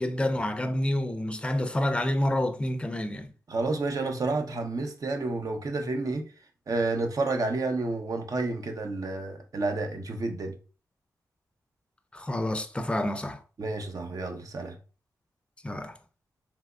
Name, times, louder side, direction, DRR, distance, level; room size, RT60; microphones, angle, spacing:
voice 1, 0.0-3.3 12.1-13.4 15.6-16.0, left 1 dB, 15° left, 0.5 m, -28 dB
voice 2, 3.5-6.3 6.7-10.6 13.6-14.8, right 3 dB, 55° right, 0.6 m, -30 dB
3.4 x 2.9 x 2.3 m
cardioid pair, 50°, 7 cm